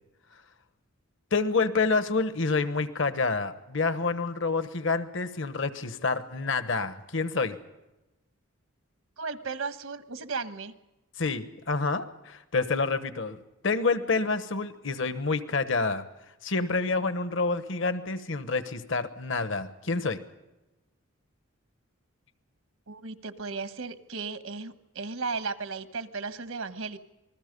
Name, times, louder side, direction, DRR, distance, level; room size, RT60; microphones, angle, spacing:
voice 1, 1.3-7.6 11.2-16.0 16.4-20.2, left 4 dB, 65° left, 11 dB, 1.1 m, -28 dB
voice 2, 9.2-10.7 22.9-27.0, right 4 dB, 85° right, 10 dB, 1.3 m, -35 dB
27.5 x 20.5 x 5.3 m, 1.0 s
head